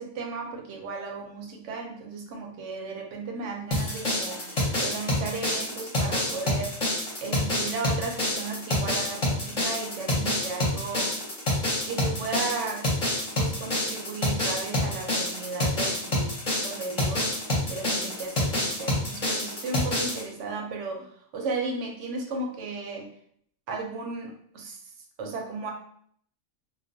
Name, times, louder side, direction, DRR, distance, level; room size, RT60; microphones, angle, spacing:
voice 1, 0.0-4.5 4.8-6.8 7.2-11.1 11.8-12.9 13.4-17.4 17.7-23.1 23.7-24.8 25.2-25.7, right 3 dB, 75° right, 1 dB, 0.9 m, -35 dB
sound 1, 3.7-20.2, left 1 dB, 35° left, 0.8 m, -27 dB
2.3 x 2.2 x 2.5 m, 0.64 s
omnidirectional pair, 1.3 m